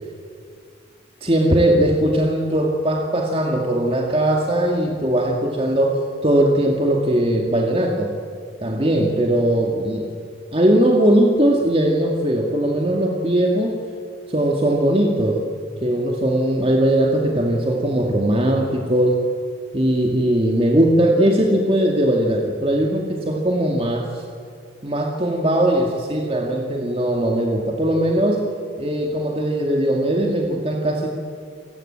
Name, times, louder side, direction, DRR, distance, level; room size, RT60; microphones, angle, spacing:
voice 1, 1.2-8.1 8.6-10.1 10.5-13.8 14.3-15.4 15.8-19.2 19.7-24.2 24.8-28.5 28.8-31.1, right 1 dB, 30° right, 1 dB, 2.2 m, -19 dB
28.5 x 20.5 x 8.9 m, 2.3 s
head